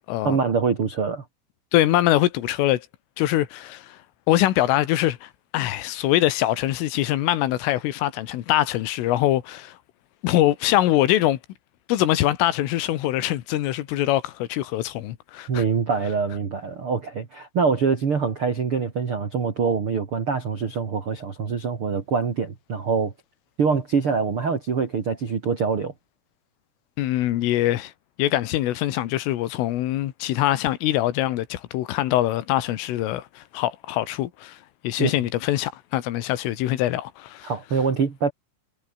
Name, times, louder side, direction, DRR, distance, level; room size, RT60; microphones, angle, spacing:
voice 1, 0.2-1.2 15.5-23.1 23.6-25.9 35.0-35.1 37.4-38.3, right 5 dB, 35° right, 2.4 m, -24 dB
voice 2, 1.7-2.9 3.2-4.0 4.3-9.8 10.2-11.4 11.9-15.6 27.0-27.9 28.2-37.5, left 14 dB, 90° left, 4.1 m, -23 dB
omnidirectional pair, 5.7 m